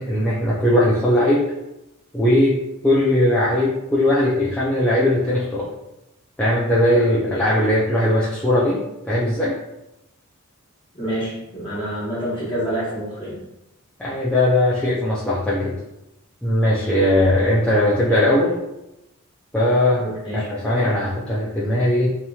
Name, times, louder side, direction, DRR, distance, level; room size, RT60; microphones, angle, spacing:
voice 1, 0.0-1.5 2.1-2.6 2.8-5.7 6.4-9.6 14.0-15.7 16.4-18.6 19.5-22.1, left 1 dB, 5° left, -9 dB, 0.4 m, -19 dB
voice 2, 10.9-13.4 20.0-20.5, right 1 dB, 20° left, -8 dB, 1.2 m, -27 dB
2.9 x 2.8 x 2.3 m, 0.91 s
head